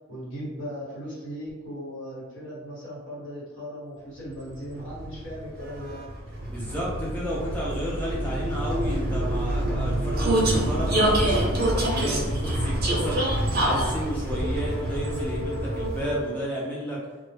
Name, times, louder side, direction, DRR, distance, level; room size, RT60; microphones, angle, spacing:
voice 1, 0.1-6.0, equal, 70° left, -7 dB, 1.2 m, -38 dB
Vehicle, 4.5-16.4, right 1 dB, 50° right, 0.5 m, -26 dB
voice 2, 6.5-17.0, equal, 10° left, -6 dB, 0.3 m, -32 dB
2.1 x 2.0 x 3.1 m, 1.2 s
head